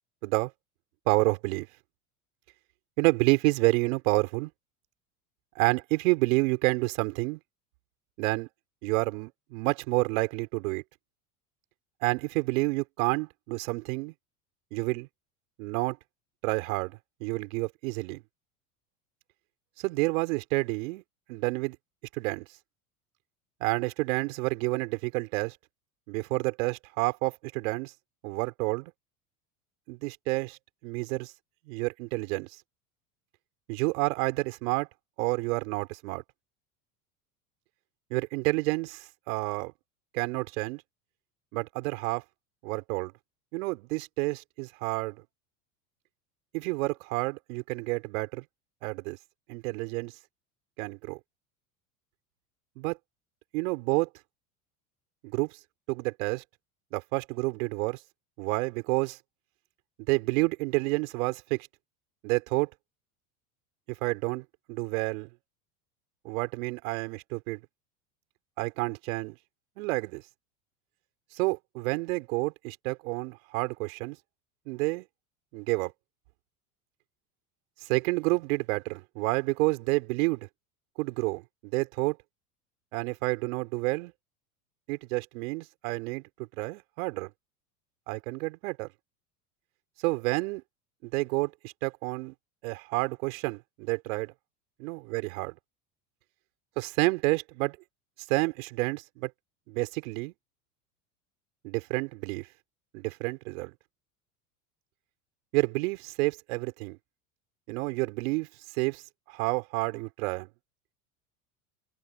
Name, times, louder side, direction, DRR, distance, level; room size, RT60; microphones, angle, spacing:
voice 1, 1.1-1.7 3.0-4.5 5.5-7.4 8.2-8.5 8.8-10.8 12.0-14.1 14.7-15.1 15.6-16.0 16.4-18.2 19.8-21.0 21.3-21.8 22.1-22.4 23.6-25.6 26.1-27.9 28.2-28.9 29.9-31.3 31.7-32.5 33.7-34.9 35.2-36.2 38.1-39.7 40.1-40.8 41.5-42.2 42.6-43.1 43.5-45.2 46.5-48.4 48.8-49.2 49.5-50.1 50.8-51.2 52.8-53.0 53.5-54.1 55.2-55.5 55.9-56.4 56.9-58.0 58.4-59.2 60.1-61.7 62.2-62.7 64.0-65.3 66.2-67.6 68.6-69.4 69.8-70.2 71.3-74.2 74.7-75.0 75.5-75.9 77.8-80.5 81.0-82.2 82.9-84.1 84.9-86.2 86.6-87.3 88.1-88.9 90.0-90.6 91.0-92.3 92.6-94.3 94.8-95.5 96.8-97.8 98.3-99.3 99.7-100.3 101.6-102.5 102.9-103.7 105.5-107.0 107.7-108.5 108.8-110.5, right 25 dB, 65° right, 4.8 m, -29 dB
open air
hypercardioid pair, 85°, 44 cm